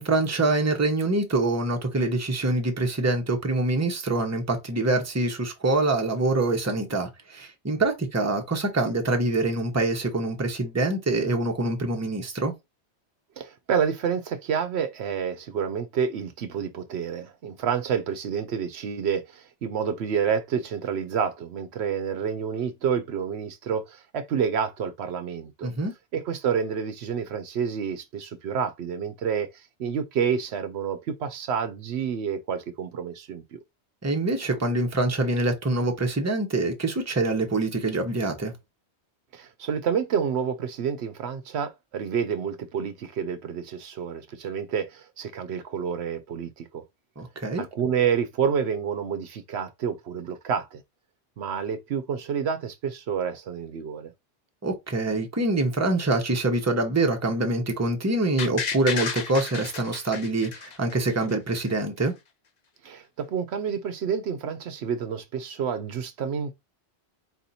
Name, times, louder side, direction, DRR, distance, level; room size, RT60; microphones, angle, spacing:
voice 1, 0.0-12.5 25.6-25.9 34.0-38.5 47.2-47.6 54.6-62.1, right 2 dB, 15° right, 0.8 m, -25 dB
voice 2, 13.4-25.7 26.1-33.6 39.3-46.8 47.6-50.8 51.4-54.1 62.8-66.5, right 7 dB, 70° right, 0.9 m, -29 dB
sound 1, 58.4-61.3 61.7-61.8, left 5 dB, 45° left, 0.6 m, -32 dB
4.2 x 2.7 x 4.1 m
omnidirectional pair, 1.2 m